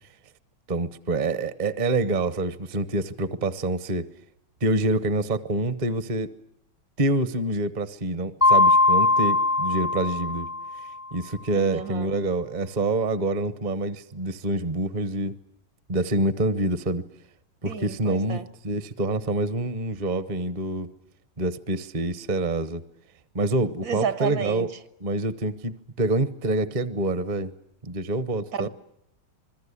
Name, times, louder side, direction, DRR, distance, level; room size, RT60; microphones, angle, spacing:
voice 1, 0.7-4.1 4.6-6.3 7.0-10.5 11.1-15.3 15.9-17.0 17.6-20.9 21.4-22.8 23.3-24.7 25.0-27.5 27.8-28.7, right 2 dB, 35° right, 0.7 m, -26 dB
Mallet percussion, 8.4-11.0, left 2 dB, 5° right, 0.4 m, -21 dB
voice 2, 11.5-12.1 17.6-18.5 23.8-24.7 28.5-28.7, right 6 dB, 65° right, 1.9 m, -31 dB
26.5 x 21.5 x 8.4 m
omnidirectional pair, 2.3 m